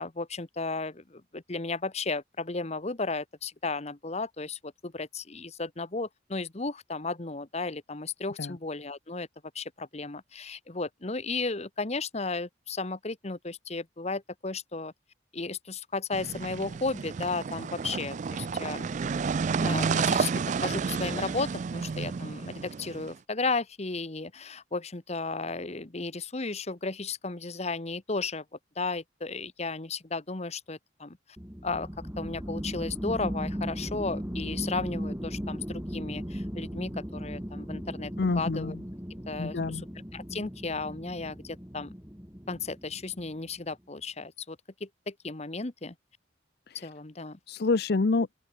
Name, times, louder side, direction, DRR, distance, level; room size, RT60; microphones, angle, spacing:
voice 1, 0.0-9.3 9.5-14.9 15.3-18.9 19.6-20.3 20.6-28.4 28.8-31.2 31.6-31.9 32.2-38.8 39.3-39.6 40.1-41.9 42.5-45.9 46.8-47.4, left 3 dB, 35° left, 1.2 m, -34 dB
sound 1, 16.1-23.1, right 5 dB, 40° right, 0.3 m, -31 dB
sound 2, 31.4-43.4, equal, 10° right, 3.6 m, -37 dB
voice 2, 38.2-38.8 39.4-39.8 46.7-46.9 47.5-48.3, left 3 dB, 60° left, 0.6 m, -27 dB
open air
head